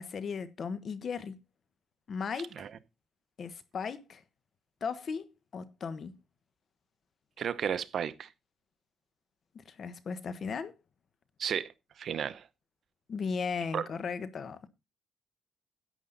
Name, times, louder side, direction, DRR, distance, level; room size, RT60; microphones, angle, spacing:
voice 1, 0.0-1.4 2.1-2.7 3.4-4.2 4.8-6.1 9.5-10.7 13.1-14.7, left 5 dB, 50° left, 1.2 m, -36 dB
voice 2, 7.4-8.3 11.4-11.7 12.0-12.5 13.7-13.9, right 8 dB, 60° right, 0.8 m, -33 dB
11.0 x 8.4 x 4.0 m
cardioid pair, 90°, 0 cm